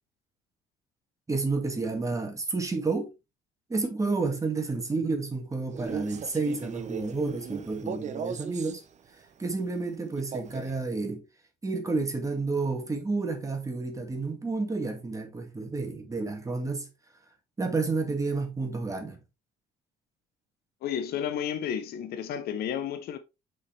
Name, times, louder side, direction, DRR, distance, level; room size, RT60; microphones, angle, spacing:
voice 1, 1.3-3.1 3.7-8.8 9.4-11.2 11.6-16.9 17.6-19.2, right 3 dB, 20° right, 2.0 m, -30 dB
Male speech man speaking, 5.7-8.8 10.2-10.8, right 7 dB, 45° right, 0.9 m, -37 dB
voice 2, 20.8-23.2, left 9 dB, 65° left, 0.9 m, -32 dB
6.5 x 5.6 x 3.3 m
cardioid pair, 110°, 17 cm